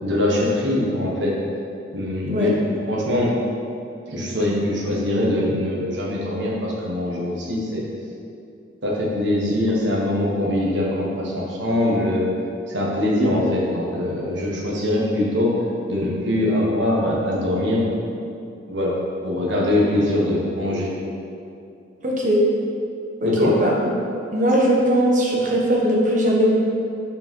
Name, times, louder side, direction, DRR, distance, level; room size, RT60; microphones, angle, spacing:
voice 1, 0.0-1.3 1.9-3.3 4.1-7.8 8.8-12.2 12.7-15.5 15.9-18.2 18.7-18.9 19.2-20.9 23.2-23.5, left 1 dB, 75° right, -4 dB, 1.4 m, -22 dB
voice 2, 22.0-22.4 23.2-23.8 24.3-26.5, equal, 45° right, -3 dB, 1.2 m, -19 dB
5.6 x 5.1 x 5.4 m, 2.6 s
head